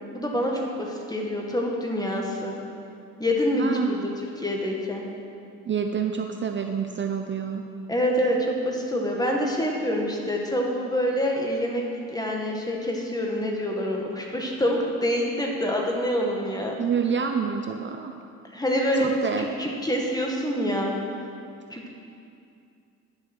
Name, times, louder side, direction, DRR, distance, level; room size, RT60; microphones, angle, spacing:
voice 1, 0.1-2.6 3.2-4.0 4.4-5.1 7.9-16.8 18.5-19.1 19.4-21.0 21.7-21.9, equal, 10° left, 0 dB, 1.8 m, -26 dB
voice 2, 3.6-3.9 5.6-7.6 16.8-18.1 19.0-19.5, right 6 dB, 40° right, 5 dB, 0.6 m, -27 dB
11.0 x 7.1 x 6.2 m, 2.5 s
cardioid pair, 90°, 30 cm